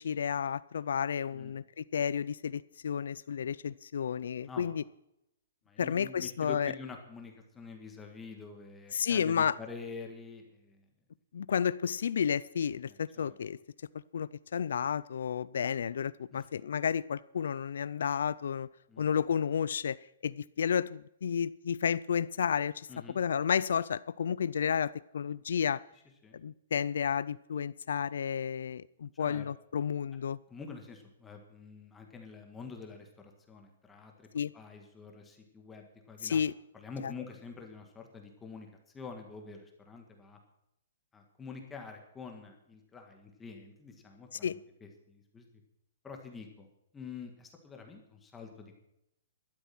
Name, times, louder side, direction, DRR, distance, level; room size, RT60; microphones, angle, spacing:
voice 1, 0.0-4.8 5.8-6.7 8.9-9.6 11.3-13.6 14.1-18.7 19.0-20.0 20.2-25.8 26.3-30.4 34.3-34.5 36.2-36.5 44.3-44.6, left 7 dB, 75° left, 19 dB, 0.4 m, -31 dB
voice 2, 5.7-10.8 12.9-13.4 16.3-16.5 18.9-19.1 22.9-23.2 26.2-26.4 29.2-29.4 30.5-36.4 36.7-38.7 38.9-40.4 41.1-45.5 46.0-46.7 46.9-48.7, left 5 dB, 10° left, 3 dB, 1.8 m, -47 dB
13.0 x 12.0 x 6.0 m, 0.80 s
hypercardioid pair, 160°, 0 cm